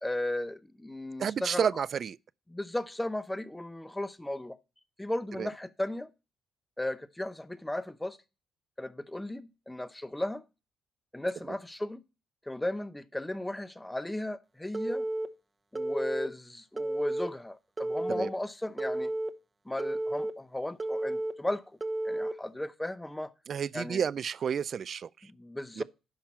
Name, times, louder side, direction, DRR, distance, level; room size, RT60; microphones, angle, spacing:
voice 1, 0.0-1.7 2.5-4.6 5.0-6.1 6.8-8.2 8.8-10.4 11.1-12.0 12.5-15.1 15.7-19.1 19.6-21.7 22.0-23.3 23.7-24.0 25.2-25.8, left 1 dB, 10° left, 0.8 m, -35 dB
voice 2, 1.2-2.2 5.4-5.5 18.1-18.3 23.5-25.1 25.8-25.9, right 7 dB, 55° right, 0.4 m, -31 dB
Telephone, 14.7-15.3 15.7-16.3 16.8-17.3 17.8-18.3 18.8-19.3 19.8-20.3 20.8-21.3 21.8-22.3, right 1 dB, 20° right, 0.9 m, -32 dB
10.5 x 5.8 x 4.4 m
cardioid pair, 90°, 0 cm